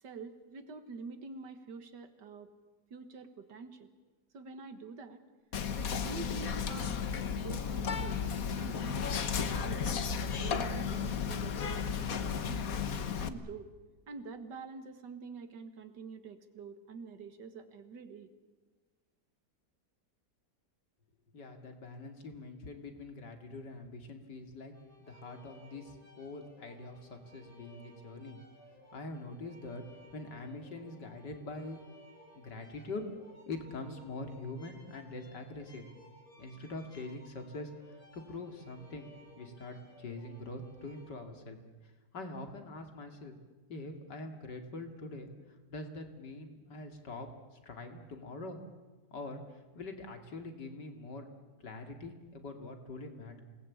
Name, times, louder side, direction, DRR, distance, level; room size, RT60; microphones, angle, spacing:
voice 1, 0.0-2.5 2.9-3.9 4.3-5.2 5.8-8.2 8.6-12.8 13.2-13.7 14.1-18.3, right 4 dB, 90° right, 9 dB, 2.2 m, -46 dB
Whispering, 5.5-13.3, left 6 dB, 55° left, 1.6 m, -34 dB
voice 2, 21.3-24.7 25.0-28.4 28.9-29.9 30.1-31.8 32.4-33.0 33.5-35.8 36.4-39.1 39.3-41.6 41.8-43.4 43.7-48.6 49.1-51.3 51.6-53.4, left 2 dB, 85° left, 5 dB, 3.0 m, -44 dB
sound 1, 24.7-41.0, equal, 10° right, 8.1 m, -59 dB
27.5 x 19.5 x 8.6 m, 1.3 s
omnidirectional pair, 1.8 m